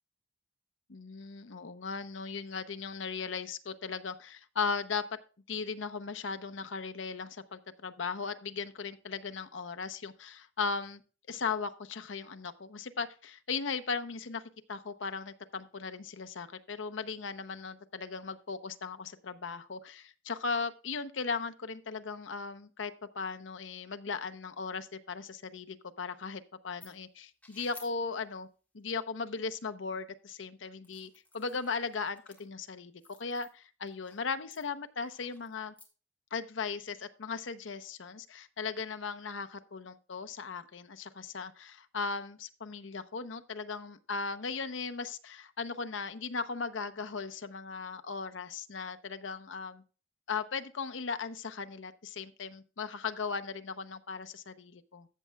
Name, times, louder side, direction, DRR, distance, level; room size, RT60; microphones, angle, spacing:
voice 1, 0.9-5.0 5.5-11.0 11.3-14.4 14.7-28.5 28.7-32.9 33.2-35.7 36.3-49.8 50.3-55.1, left 5 dB, 90° left, 9 dB, 0.8 m, -37 dB
sound 1, 26.8-26.9 27.4-27.9 30.8-32.5 33.0-33.5 33.9-34.2 34.5-35.9, left 3 dB, 10° left, 1.5 m, -55 dB
14.0 x 7.4 x 2.3 m, 0.35 s
head